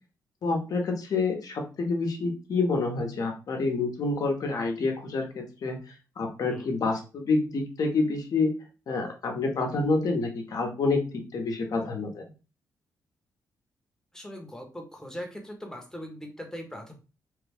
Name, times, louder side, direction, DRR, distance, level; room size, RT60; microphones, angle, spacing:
voice 1, 0.4-8.5 8.9-12.2, left 3 dB, 60° left, 2 dB, 0.9 m, -28 dB
voice 2, 14.1-16.9, equal, 10° left, 2 dB, 0.9 m, -40 dB
3.2 x 2.3 x 3.4 m, 0.32 s
cardioid pair, 100°, 7 cm